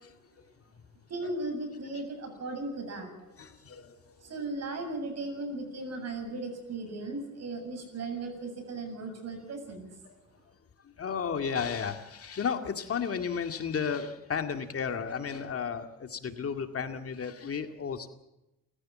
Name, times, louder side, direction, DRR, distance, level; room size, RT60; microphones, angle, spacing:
voice 1, 1.1-3.3 4.2-9.9, right 2 dB, 60° right, 6 dB, 7.7 m, -37 dB
voice 2, 3.4-4.1 10.0-10.1 11.0-18.1, left 6 dB, 50° left, 6 dB, 2.1 m, -33 dB
29.0 x 15.0 x 7.5 m, 0.93 s
cardioid pair, 90°, 30 cm